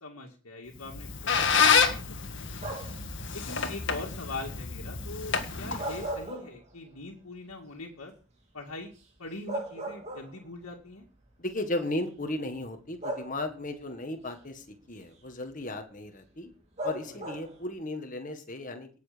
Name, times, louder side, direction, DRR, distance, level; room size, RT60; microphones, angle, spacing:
voice 1, 0.0-2.7 3.3-8.1 8.5-8.9 9.2-11.1 17.1-17.2, left 2 dB, 75° left, -1 dB, 2.2 m, -42 dB
Squeak, 0.8-6.2, left 6 dB, 55° left, 1.7 m, -28 dB
sound 1, 2.6-3.1 5.6-7.0 7.4-7.5 9.0-9.1 9.5-10.6 11.6-11.8 13.0-13.7 16.8-17.6, right 1 dB, 30° right, 3.4 m, -37 dB
voice 2, 11.4-16.5 16.8-18.9, left 1 dB, 35° left, 6 dB, 1.7 m, -35 dB
18.5 x 7.2 x 5.2 m, 0.39 s
head